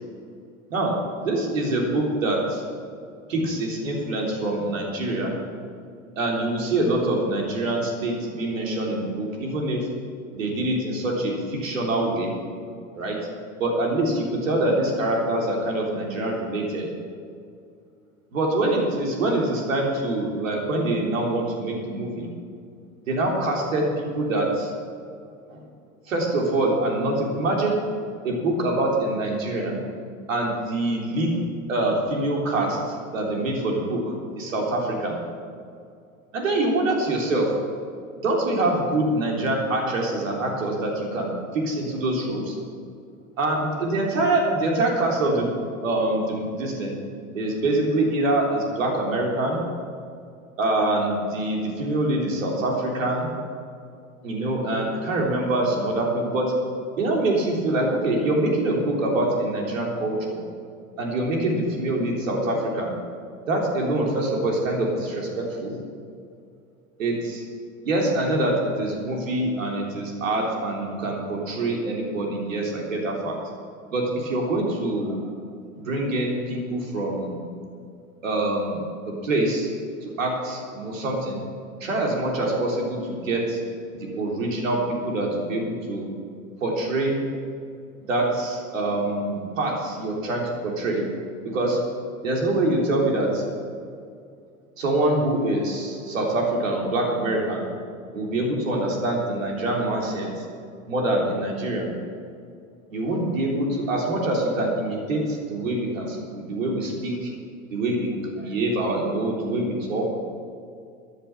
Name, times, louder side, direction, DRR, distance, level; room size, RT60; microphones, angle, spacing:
voice 1, 1.2-2.6 3.3-5.3 6.2-9.9 10.3-12.3 12.9-13.2 13.6-16.9 18.3-22.3 23.1-24.7 25.5-25.6 26.1-27.8 28.2-29.8 30.3-31.4 31.7-35.2 36.3-37.5 38.2-42.6 43.4-45.5 45.8-47.0 47.3-49.6 50.6-53.3 54.2-56.5 57.0-60.4 61.0-62.9 63.5-65.8 67.0-67.4 67.8-73.4 73.9-75.2 75.8-77.4 78.2-79.7 80.0-81.4 81.8-83.6 83.9-86.1 86.6-87.2 88.1-91.0 91.4-91.8 92.2-93.4 94.8-97.7 98.1-100.3 100.9-101.9 102.9-107.3 107.7-110.1, right 2 dB, 70° right, 0 dB, 3.6 m, -25 dB
13.5 x 10.0 x 7.1 m, 2.3 s
figure-of-eight pair, 85°, 41 cm